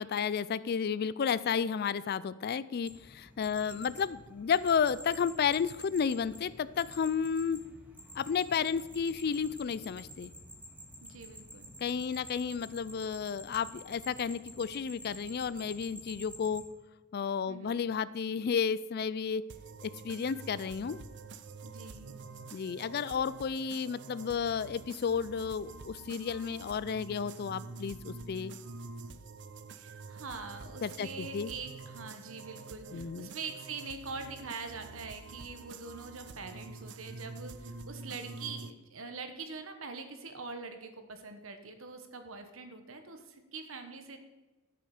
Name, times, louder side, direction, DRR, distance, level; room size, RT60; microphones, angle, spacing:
voice 1, 0.0-7.6 8.2-10.3 11.8-16.6 17.1-19.4 19.8-21.0 22.5-28.5 30.8-31.5 32.9-33.3, left 6 dB, 50° left, 17 dB, 0.4 m, -32 dB
sound 1, 2.8-16.6, equal, 10° right, 1.8 m, -50 dB
voice 2, 3.5-3.9 11.0-11.7 17.5-17.8 21.6-22.2 29.7-44.2, right 4 dB, 75° right, 7 dB, 1.4 m, -44 dB
sound 2, 19.5-38.7, right 4 dB, 60° right, 0.6 m, -47 dB
13.0 x 6.9 x 4.9 m, 1.2 s
head